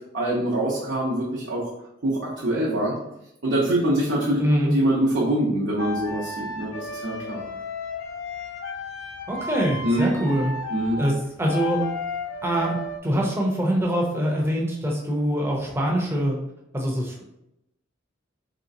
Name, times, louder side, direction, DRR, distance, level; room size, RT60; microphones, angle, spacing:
voice 1, 0.1-1.7 2.0-3.0 3.4-4.4 4.7-7.4 9.8-10.1 10.7-11.0, right 1 dB, 65° right, -6 dB, 0.7 m, -24 dB
voice 2, 4.4-4.7 9.3-10.5 11.0-11.8 12.4-12.8 13.0-16.4 16.7-17.2, equal, 10° right, -1 dB, 0.6 m, -24 dB
sound 1, 5.8-13.0, left 3 dB, 85° left, 0.5 m, -33 dB
3.1 x 2.9 x 2.6 m, 0.83 s
head